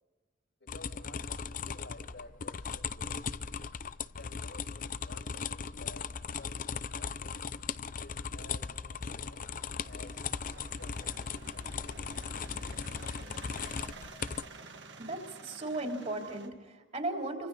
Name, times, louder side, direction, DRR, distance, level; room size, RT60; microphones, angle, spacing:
voice 1, 0.7-3.3 4.2-6.0 6.4-7.4 8.0-9.5 9.9-11.2 11.7-12.2 12.5-13.5, left 2 dB, 75° left, 0 dB, 6.0 m, -54 dB
sound 1, 0.7-14.5, left 6 dB, 45° left, 0.5 m, -38 dB
sound 2, 7.7-16.5, right 3 dB, 65° right, 2.1 m, -51 dB
voice 2, 15.0-17.5, right 2 dB, 35° right, 1 dB, 3.5 m, -36 dB
30.0 x 25.0 x 4.2 m, 1.3 s
head